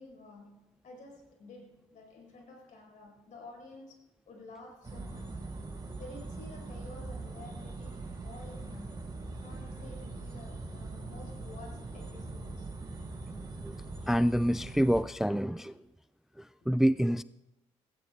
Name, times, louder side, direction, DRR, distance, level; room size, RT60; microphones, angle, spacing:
voice 1, 0.0-5.4 6.0-9.1 9.4-12.7 16.6-16.7, left 2 dB, 65° left, 1 dB, 4.9 m, -51 dB
sound 1, 4.8-15.0, right 3 dB, 30° right, 4.6 m, -42 dB
voice 2, 14.1-15.8 16.7-17.2, equal, 5° right, 16 dB, 0.3 m, -26 dB
17.5 x 16.5 x 2.4 m, 0.99 s
supercardioid pair, 55°, 14 cm